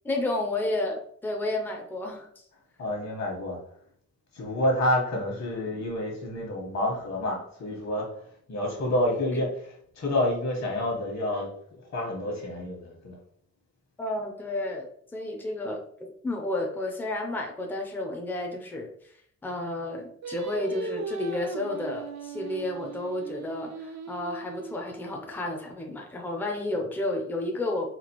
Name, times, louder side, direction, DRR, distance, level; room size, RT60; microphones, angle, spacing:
voice 1, 0.0-2.4 9.3-9.4 14.0-15.8 16.2-19.1 19.4-27.9, left 1 dB, 5° left, 1 dB, 0.4 m, -31 dB
voice 2, 2.8-3.6 4.3-8.2 8.5-11.5 11.9-13.2, left 1 dB, 60° left, -1 dB, 1.2 m, -28 dB
Singing, 20.2-25.5, right 4 dB, 60° right, 0.5 m, -38 dB
4.2 x 2.4 x 2.9 m, 0.63 s
wide cardioid pair, 180°, 30 cm